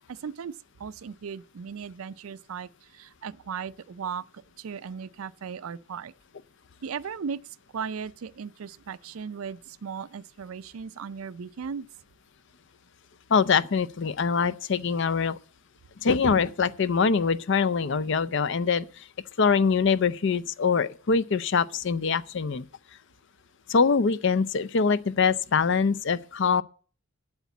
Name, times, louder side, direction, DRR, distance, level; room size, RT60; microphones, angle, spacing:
voice 1, 0.1-6.1 6.8-11.9, right 6 dB, 80° right, 0.5 m, -37 dB
voice 2, 13.3-15.4 16.0-19.1 19.4-22.7 23.7-26.6, left 5 dB, 60° left, 0.5 m, -24 dB
8.4 x 8.1 x 8.1 m
head